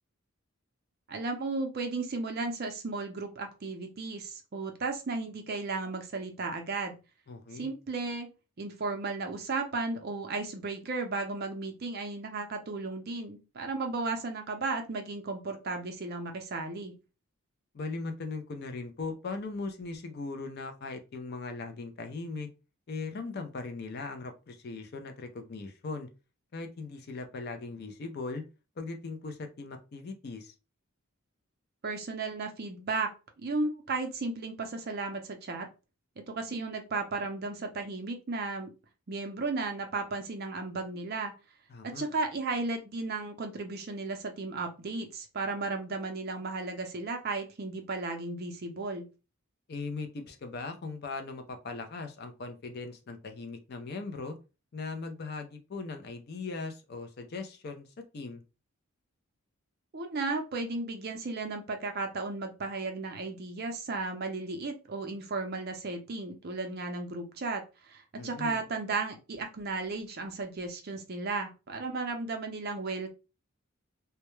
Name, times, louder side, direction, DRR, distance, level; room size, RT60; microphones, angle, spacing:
voice 1, 1.1-7.0 7.5-8.3 8.6-17.0 31.8-35.7 36.2-38.7 39.1-41.3 41.8-49.1 59.9-73.1, right 3 dB, 45° right, 5 dB, 0.5 m, -34 dB
voice 2, 7.3-7.7 17.7-22.5 22.9-26.1 26.5-28.4 28.8-30.5 41.7-42.1 49.7-54.4 54.7-57.9 58.1-58.4 68.2-68.6, left 3 dB, 45° left, 6 dB, 0.4 m, -39 dB
2.2 x 2.1 x 3.0 m, 0.30 s
head